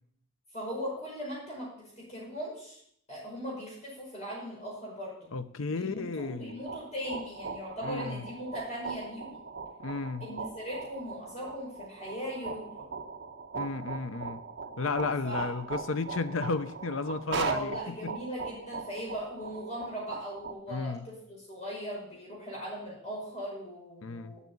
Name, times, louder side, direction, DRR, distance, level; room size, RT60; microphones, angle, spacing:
voice 1, 0.5-1.7 2.0-2.8 3.1-5.3 5.7-9.4 10.2-12.9 15.2-15.5 17.4-24.4, equal, 30° left, -5 dB, 5.3 m, -39 dB
voice 2, 5.3-6.6 7.8-8.2 9.8-10.3 13.5-14.4 14.8-17.8 20.7-21.0 24.0-24.3, left 3 dB, 75° left, 11 dB, 0.7 m, -33 dB
sound 1, 6.5-20.5, right 4 dB, 55° right, 1.1 m, -39 dB
8.2 x 7.5 x 8.4 m, 0.69 s
head